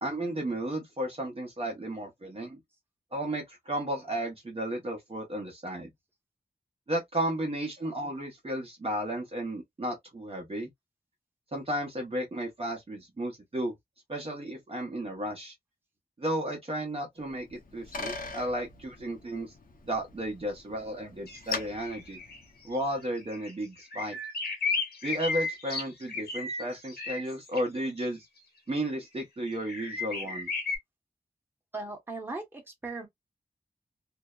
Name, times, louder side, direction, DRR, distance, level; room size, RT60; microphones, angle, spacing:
voice 1, 0.0-2.6 3.1-5.9 6.9-10.7 11.5-13.7 14.1-15.5 16.2-19.5 19.8-22.2 22.6-24.2 25.0-28.3 28.7-30.5, right 1 dB, 35° right, 0.9 m, -33 dB
Bicycle, 17.3-23.0, left 4 dB, 60° left, 0.7 m, -42 dB
sound 1, 21.3-22.4 22.7-22.8 23.3-23.5 23.8-27.6 28.8-28.9 29.6-30.8, left 4 dB, 80° left, 1.2 m, -34 dB
voice 2, 31.7-33.1, right 3 dB, 15° right, 1.0 m, -38 dB
2.6 x 2.1 x 2.2 m
wide cardioid pair, 105°, 16 cm